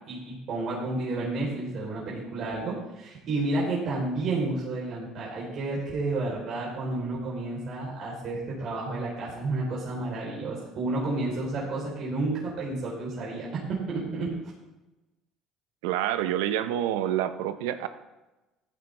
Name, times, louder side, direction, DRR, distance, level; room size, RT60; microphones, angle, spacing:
voice 1, 0.1-14.3, right 2 dB, 55° right, -6 dB, 3.7 m, -31 dB
voice 2, 15.8-17.9, right 11 dB, 90° right, 11 dB, 0.7 m, -27 dB
14.5 x 9.2 x 3.3 m, 1.1 s
supercardioid pair, 95°, 0 cm